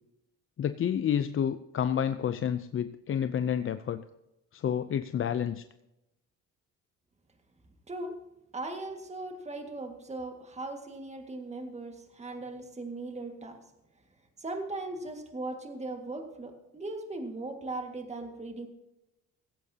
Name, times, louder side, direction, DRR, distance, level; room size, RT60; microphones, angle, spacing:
voice 1, 0.6-4.0 4.5-5.6, left 9 dB, 40° left, 11 dB, 0.6 m, -29 dB
voice 2, 7.9-8.2 8.5-13.6 14.4-18.7, right 2 dB, 20° right, 4 dB, 1.9 m, -38 dB
16.5 x 15.0 x 2.9 m, 0.91 s
cardioid pair, 95°, 31 cm